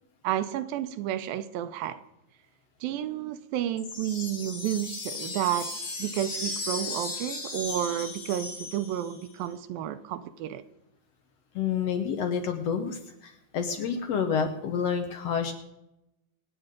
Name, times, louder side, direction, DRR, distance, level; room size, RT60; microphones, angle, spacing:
voice 1, 0.2-2.0 2.8-5.7 6.0-10.6, right 11 dB, 85° right, 2.5 m, -31 dB
sound 1, 3.8-9.3, left 3 dB, 85° left, 5.5 m, -36 dB
voice 2, 11.5-15.5, left 7 dB, 70° left, 1.6 m, -29 dB
25.5 x 9.2 x 3.7 m
omnidirectional pair, 4.1 m